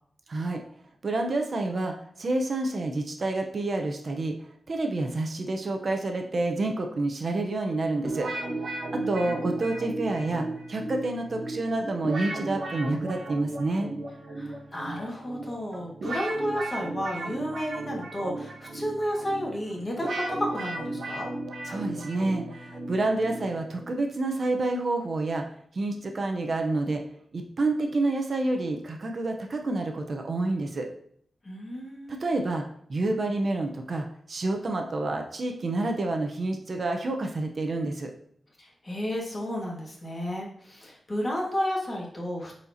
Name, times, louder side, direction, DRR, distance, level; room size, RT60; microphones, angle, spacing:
voice 1, 0.3-0.6 1.0-4.4 4.7-8.3 8.9-13.9 21.6-25.4 25.7-27.0 27.3-30.9 32.1-38.1, right 2 dB, 50° right, 3 dB, 0.8 m, -28 dB
sound 1, 8.0-24.0, right 2 dB, 65° right, 1.2 m, -35 dB
voice 2, 8.9-9.5 14.3-21.3 31.4-32.2 38.6-42.5, equal, 30° left, -2 dB, 1.9 m, -32 dB
8.8 x 4.3 x 2.8 m, 0.64 s
wide cardioid pair, 95°, 0 cm